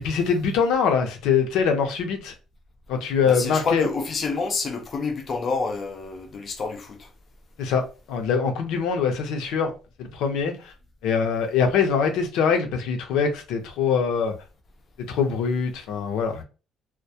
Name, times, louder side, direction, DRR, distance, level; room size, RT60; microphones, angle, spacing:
voice 1, 0.0-2.3 2.9-3.9 7.6-7.8 8.1-9.7 10.0-10.7 11.0-14.3 15.0-16.4, left 6 dB, 85° left, 0.6 m, -23 dB
voice 2, 3.3-7.1, left 4 dB, 30° left, 0.4 m, -28 dB
2.2 x 2.1 x 2.7 m
cardioid pair, 180°, 0 cm